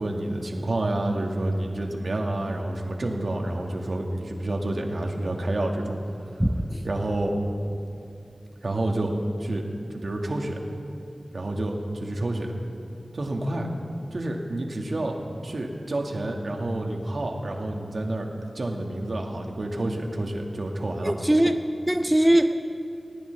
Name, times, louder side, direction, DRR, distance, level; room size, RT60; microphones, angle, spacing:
voice 1, 0.0-6.0 6.8-7.4 8.6-9.1 9.4-9.6 9.9-10.6 11.3-12.6 13.1-13.7 14.1-15.2 15.4-21.1, right 1 dB, 65° right, 1 dB, 1.9 m, -29 dB
voice 2, 6.4-6.8 21.0-21.5 21.9-22.6, right 1 dB, 10° right, 6 dB, 0.7 m, -21 dB
19.5 x 19.0 x 3.4 m, 2.6 s
cardioid pair, 45°, 0 cm